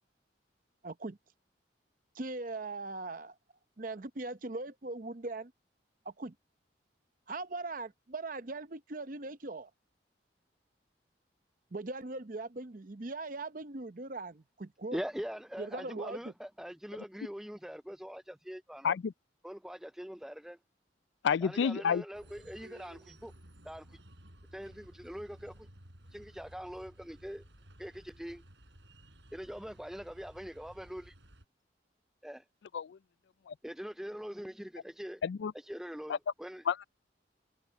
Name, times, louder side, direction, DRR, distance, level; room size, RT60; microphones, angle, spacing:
voice 1, 0.8-1.2 2.1-3.3 3.8-5.5 6.0-6.3 7.3-9.7 11.7-15.0 15.6-16.3, right 2 dB, 45° right, 0.8 m, -40 dB
voice 2, 14.9-19.0 19.4-20.6 21.4-23.3 23.6-24.0 24.5-25.7 26.1-27.4 27.8-28.4 29.3-31.1 32.2-32.4 33.6-35.2 35.7-36.6, equal, ahead, 0.3 m, -43 dB
voice 3, 21.2-22.0 32.7-33.0 33.5-33.6 35.2-35.5 36.1-36.2 36.7-36.8, left 7 dB, 75° left, 0.3 m, -30 dB
sound 1, 22.1-31.5, right 1 dB, 75° right, 6.7 m, -56 dB
head